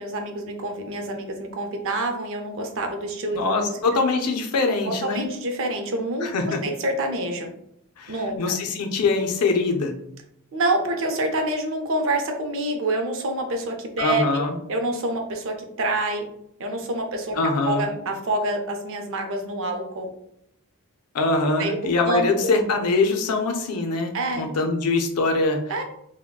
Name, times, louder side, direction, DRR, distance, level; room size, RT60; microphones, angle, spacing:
voice 1, 0.0-3.8 4.9-7.5 8.1-8.4 10.5-14.4 14.7-16.3 16.6-17.4 17.6-20.1 21.6-22.5 24.1-24.5 25.7-25.8, right 1 dB, 60° right, 4 dB, 0.5 m, -27 dB
voice 2, 3.3-5.3 6.2-6.6 8.0-10.0 14.0-14.6 17.4-17.9 21.1-25.6, left 3 dB, 85° left, 5 dB, 0.5 m, -23 dB
3.5 x 2.1 x 2.2 m, 0.73 s
head